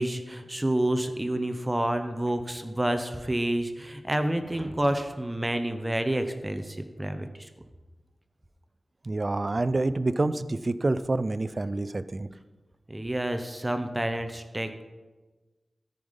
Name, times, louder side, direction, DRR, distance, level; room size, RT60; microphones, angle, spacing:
voice 1, 0.0-7.5 12.9-14.8, right 1 dB, 20° right, 8 dB, 0.8 m, -29 dB
voice 2, 9.0-12.3, right 2 dB, 45° right, 14 dB, 0.5 m, -27 dB
13.5 x 5.4 x 5.3 m, 1.2 s
cardioid pair, 40°, 0 cm